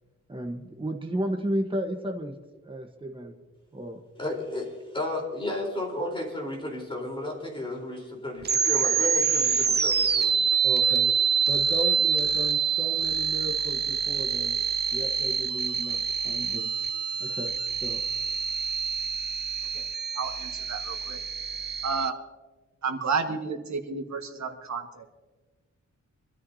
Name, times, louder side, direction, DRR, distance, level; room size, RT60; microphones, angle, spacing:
voice 1, 0.3-2.3 2.6-3.3 3.7-4.0 10.6-11.1 11.5-14.6 14.9-16.8 17.2-18.0, right 1 dB, 15° right, 3 dB, 1.2 m, -34 dB
voice 2, 4.2-10.3, left 1 dB, 15° left, -1 dB, 4.0 m, -33 dB
sound 1, 8.4-22.1, right 6 dB, 35° right, 0.6 m, -26 dB
voice 3, 20.1-21.2 21.8-22.1 22.8-25.1, right 5 dB, 70° right, 5 dB, 1.6 m, -31 dB
25.5 x 13.5 x 2.8 m, 1.3 s
wide cardioid pair, 155°, 29 cm